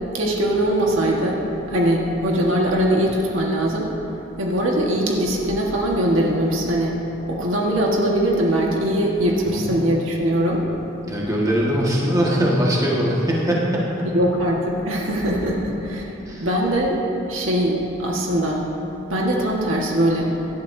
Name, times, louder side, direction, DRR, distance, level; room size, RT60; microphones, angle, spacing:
voice 1, 0.1-1.4 1.7-3.9 4.4-7.0 7.2-10.6 14.1-16.1 16.4-18.6 19.1-20.3, right 1 dB, 75° right, -2 dB, 1.5 m, -21 dB
voice 2, 11.1-14.1 16.3-16.5, equal, 15° right, -5 dB, 1.6 m, -21 dB
17.0 x 11.5 x 2.7 m, 3.0 s
head